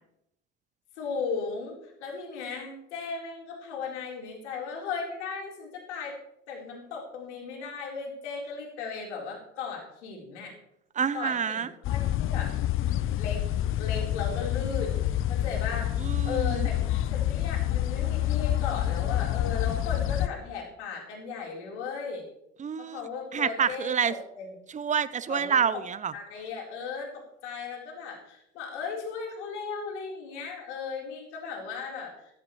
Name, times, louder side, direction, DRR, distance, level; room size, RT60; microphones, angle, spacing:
voice 1, 1.0-6.1 6.5-10.5 11.1-12.5 13.2-13.4 13.8-15.9 16.2-16.7 17.1-22.2 22.8-24.5 25.3-25.6 26.1-32.1, left 5 dB, 75° left, -1 dB, 4.3 m, -36 dB
voice 2, 11.0-11.7 16.0-16.7 22.6-24.1 24.7-26.1, right 7 dB, 20° right, 17 dB, 0.7 m, -28 dB
sound 1, 11.8-20.3, left 12 dB, 35° left, 0.6 m, -27 dB
14.5 x 13.5 x 3.2 m, 0.78 s
hypercardioid pair, 70°, 35 cm